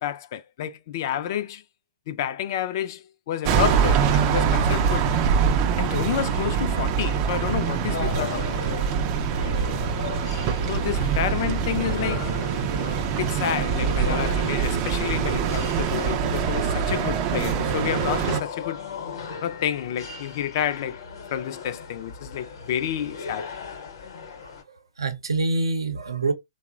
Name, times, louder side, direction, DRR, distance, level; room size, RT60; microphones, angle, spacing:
voice 1, 0.0-1.6 2.1-5.1 5.8-8.7 10.7-12.3 13.2-18.9 19.4-21.0 21.3-23.5, left 10 dB, 50° left, 0.4 m, -29 dB
sound 1, 3.5-18.4, right 7 dB, 35° right, 0.4 m, -24 dB
sound 2, 7.4-24.6, left 5 dB, 70° left, 0.8 m, -38 dB
voice 2, 24.4-26.3, right 3 dB, 90° right, 0.6 m, -26 dB
2.9 x 2.1 x 2.3 m
hypercardioid pair, 125°, 2 cm